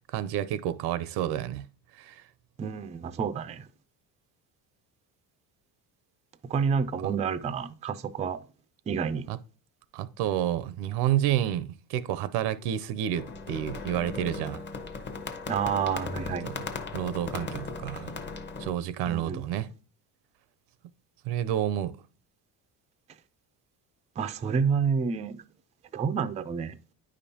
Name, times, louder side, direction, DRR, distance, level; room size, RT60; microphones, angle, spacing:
voice 1, 0.1-1.7 1.9-2.2 7.0-7.1 9.3-9.4 9.9-14.6 16.4-16.5 16.9-18.1 18.6-19.7 21.2-22.0, right 11 dB, 90° right, 0.7 m, -29 dB
voice 2, 2.6-3.7 6.4-8.4 8.9-9.3 15.5-16.5 19.1-19.4 24.2-25.4 25.9-26.8, right 6 dB, 20° right, 0.3 m, -29 dB
sound 1, 13.1-18.7, left 4 dB, 30° left, 0.9 m, -37 dB
9.6 x 5.2 x 2.8 m
cardioid pair, 135°, 39 cm